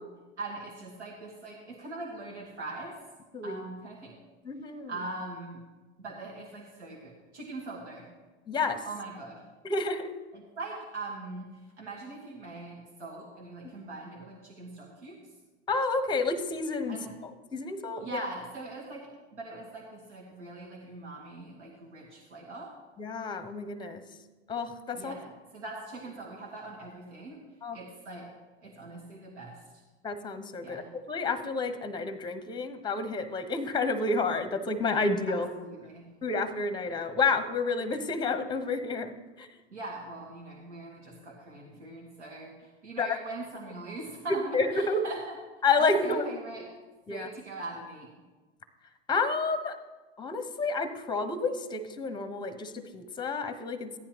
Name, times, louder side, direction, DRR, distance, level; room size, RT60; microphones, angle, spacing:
voice 1, 0.4-3.0 3.4-4.2 4.9-5.6 6.0-8.1 8.9-9.4 10.3-15.2 16.9-17.1 18.0-22.7 24.9-27.4 27.7-28.3 28.6-29.8 30.6-30.9 35.3-36.1 39.7-45.4 45.8-46.7 47.1-48.1, right 2 dB, 85° right, -2 dB, 1.9 m, -42 dB
voice 2, 4.4-4.9 8.5-8.8 9.6-10.1 13.6-13.7 15.7-17.0 17.5-18.2 23.0-24.0 24.5-25.1 27.6-27.8 30.0-30.8 31.1-35.5 36.2-39.1 39.4-39.5 43.0-43.2 44.3-45.0 45.6-46.2 46.6-46.7 47.1-47.3 49.1-49.8 50.2-53.9, left 3 dB, 15° left, 9 dB, 0.9 m, -30 dB
15.0 x 10.0 x 3.0 m, 1.2 s
hypercardioid pair, 95°, 34 cm